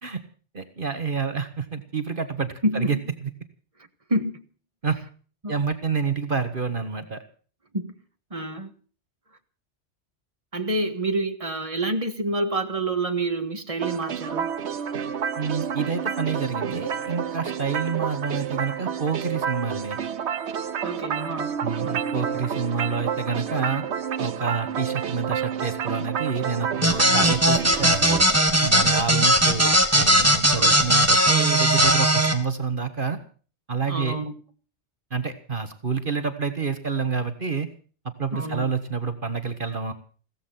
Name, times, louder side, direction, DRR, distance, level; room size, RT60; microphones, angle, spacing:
voice 1, 0.5-3.0 3.2-3.3 4.8-5.0 5.5-7.2 15.4-20.0 21.6-23.8 24.2-28.0 28.6-33.2 33.7-34.2 35.1-37.7 38.2-39.9, right 5 dB, 50° right, 1.6 m, -28 dB
voice 2, 2.6-3.0 4.1-4.4 5.4-5.6 7.7-7.9 8.3-8.7 10.5-14.5 20.8-21.6 30.5-30.8 33.9-34.3 38.3-38.7, right 2 dB, 30° right, 1.8 m, -27 dB
sound 1, 13.8-28.2, right 7 dB, 70° right, 1.2 m, -29 dB
sound 2, 26.8-32.3, right 1 dB, 15° right, 1.9 m, -18 dB
16.5 x 14.5 x 5.8 m
omnidirectional pair, 1.2 m